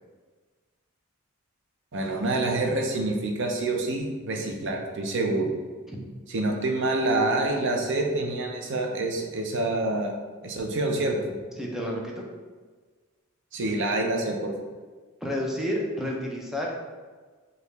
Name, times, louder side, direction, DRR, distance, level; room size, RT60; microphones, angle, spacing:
voice 1, 1.9-5.5 6.3-10.1 10.4-11.4 13.5-14.5, right 2 dB, 60° right, 2 dB, 0.6 m, -27 dB
voice 2, 11.6-12.2 15.2-16.8, equal, ahead, -2 dB, 0.6 m, -30 dB
4.8 x 2.4 x 3.2 m, 1.4 s
head